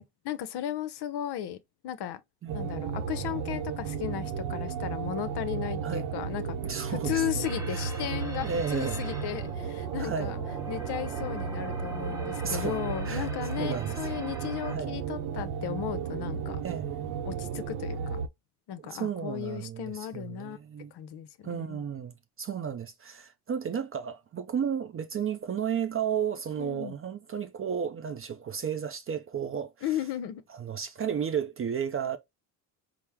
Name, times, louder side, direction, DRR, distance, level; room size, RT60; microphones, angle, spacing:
voice 1, 0.0-1.6 1.8-2.2 2.5-6.6 6.9-10.4 10.7-16.6 17.2-18.2 18.7-20.6 20.9-21.8 26.6-27.0 29.8-30.4, left 11 dB, 55° left, 0.7 m, -35 dB
voice 2, 2.4-2.7 5.8-6.2 6.7-7.4 7.7-7.9 8.4-9.1 10.0-10.4 12.4-12.8 13.1-13.3 13.6-14.0 14.7-15.0 16.6-17.1 18.8-20.9 21.4-30.0 30.5-32.2, right 7 dB, 30° right, 0.4 m, -33 dB
sound 1, 2.5-18.3, right 6 dB, 75° right, 0.7 m, -34 dB
sound 2, 7.4-14.8, right 1 dB, 5° right, 0.9 m, -44 dB
4.3 x 2.1 x 3.4 m
supercardioid pair, 80°, 50 cm